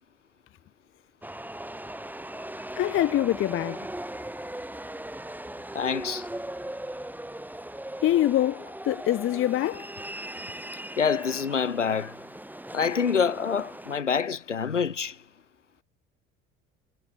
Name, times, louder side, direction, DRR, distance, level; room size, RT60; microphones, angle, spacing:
sound 1, 1.2-14.0, right 1 dB, 5° right, 2.7 m, -39 dB
voice 1, 2.8-3.8 8.0-9.8, left 13 dB, 35° left, 0.6 m, -24 dB
voice 2, 5.7-6.3 11.0-12.2 12.7-15.2, left 6 dB, 90° left, 2.2 m, -26 dB
figure-of-eight pair, 55°, 35 cm